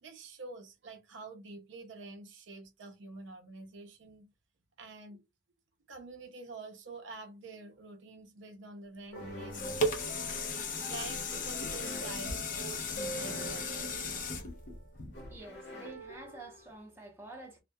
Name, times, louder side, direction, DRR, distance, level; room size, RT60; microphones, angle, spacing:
voice 1, 0.0-4.3 4.8-5.2 5.9-9.8 10.8-13.8, right 3 dB, 75° right, 0.5 m, -47 dB
sound 1, 9.1-16.8, right 1 dB, 65° left, 0.9 m, -45 dB
sound 2, 9.2-15.5 16.1-16.2, left 2 dB, 45° left, 0.5 m, -36 dB
voice 2, 15.2-17.6, right 2 dB, 10° right, 0.7 m, -49 dB
2.2 x 2.1 x 2.7 m
head